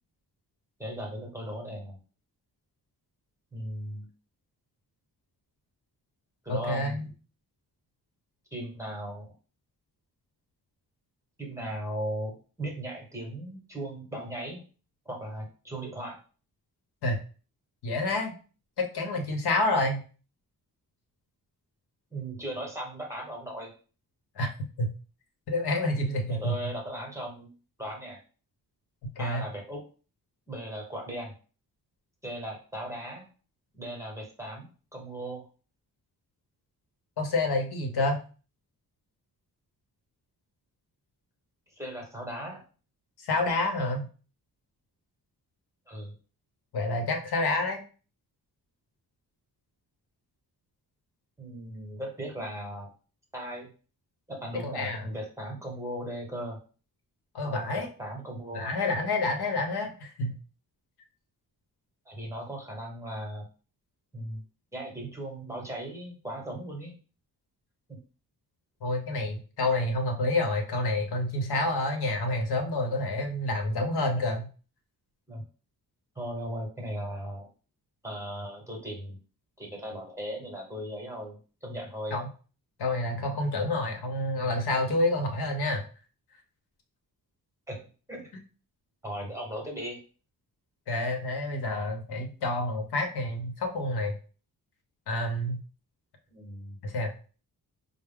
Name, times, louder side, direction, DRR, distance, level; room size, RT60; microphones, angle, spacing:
voice 1, 0.8-2.0 3.5-4.1 6.4-7.0 8.5-9.3 11.4-14.6 15.0-16.2 22.1-23.7 26.3-27.5 27.8-28.2 29.2-29.8 30.5-31.3 32.2-33.2 33.7-35.4 41.8-42.6 45.9-46.1 51.4-52.9 53.3-53.7 54.3-56.6 57.4-58.7 62.1-63.4 64.1-64.4 64.7-66.9 67.9-68.0 75.3-75.4 76.2-77.5 78.0-79.2 79.6-82.2 87.7-88.3 89.0-90.0 96.3-96.8, right 1 dB, 5° right, 0 dB, 0.9 m, -37 dB
voice 2, 6.5-7.1 17.0-17.2 17.8-18.3 18.8-20.0 24.4-24.5 24.8-24.9 25.5-26.7 29.2-29.4 37.2-38.2 43.2-44.1 46.7-47.8 54.6-55.0 57.3-57.9 58.5-60.3 68.8-74.5 82.1-82.3 82.8-85.8 90.9-94.1 95.1-95.6 96.8-97.1, left 2 dB, 75° left, 3 dB, 0.9 m, -28 dB
4.6 x 2.0 x 3.6 m, 0.37 s
wide cardioid pair, 155°, 39 cm